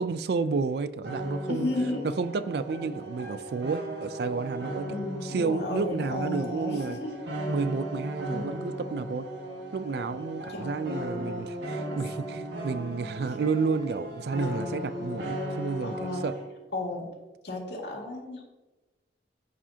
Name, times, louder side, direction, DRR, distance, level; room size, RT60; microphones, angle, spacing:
voice 1, 0.0-1.7 2.0-5.0 5.2-7.0 7.5-9.3 9.7-16.3, right 4 dB, 60° right, 0.3 m, -31 dB
sound 1, 1.0-16.5, equal, 75° right, 1.4 m, -36 dB
voice 2, 1.5-2.1 4.9-7.1 8.3-8.5 10.5-10.7 11.9-12.0 15.8-16.2 16.7-17.1 17.4-18.4, left 2 dB, 70° left, 2.0 m, -33 dB
14.0 x 4.9 x 2.8 m
head